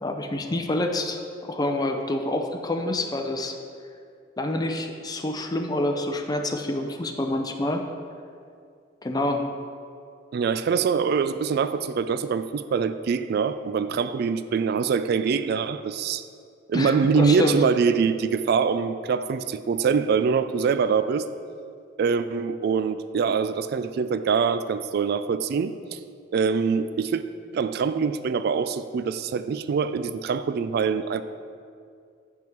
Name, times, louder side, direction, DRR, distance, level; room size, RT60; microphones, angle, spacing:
voice 1, 0.0-3.6 4.4-7.8 9.0-9.5 16.7-17.6, left 1 dB, 20° left, 4 dB, 0.5 m, -27 dB
voice 2, 10.3-16.2 16.7-21.2 22.0-26.0 26.3-27.2 27.5-31.2, right 5 dB, 55° right, 12 dB, 0.3 m, -24 dB
9.2 x 3.6 x 5.8 m, 2.3 s
head